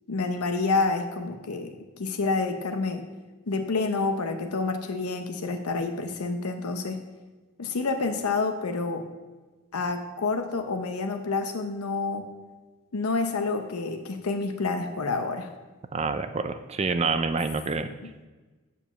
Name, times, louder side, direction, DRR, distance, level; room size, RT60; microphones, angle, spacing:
voice 1, 0.1-3.0 3.5-7.0 7.6-9.0 9.7-12.3 12.9-15.5, left 3 dB, 85° left, 6 dB, 0.7 m, -28 dB
voice 2, 15.9-17.9, right 4 dB, 30° right, 10 dB, 0.4 m, -27 dB
9.0 x 4.8 x 7.1 m, 1.2 s
head